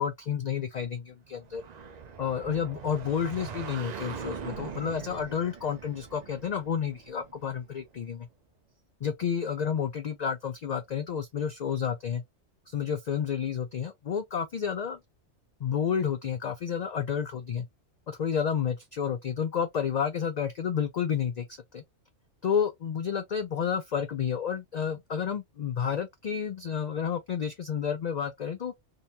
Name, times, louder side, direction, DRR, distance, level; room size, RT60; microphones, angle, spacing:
voice 1, 0.0-1.6 2.2-8.3 9.0-12.2 12.7-15.0 15.6-17.7 18.1-21.5 21.7-21.8 22.4-28.7, left 7 dB, 70° left, 0.4 m, -30 dB
sound 1, 1.4-8.0, right 6 dB, 50° right, 0.6 m, -42 dB
3.8 x 2.7 x 2.7 m
omnidirectional pair, 1.2 m